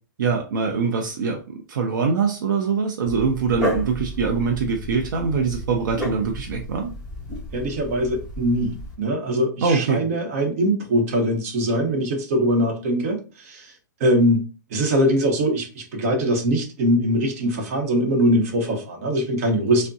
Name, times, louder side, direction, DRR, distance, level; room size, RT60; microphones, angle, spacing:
voice 1, 0.2-1.4 1.7-6.9 9.6-10.0, right 5 dB, 75° right, 0.6 m, -23 dB
Dog, 3.0-8.9, equal, 5° right, 1.0 m, -32 dB
voice 2, 7.5-13.7 14.0-19.9, equal, 50° right, 0.9 m, -22 dB
3.5 x 2.1 x 2.6 m
hypercardioid pair, 155°, 10 cm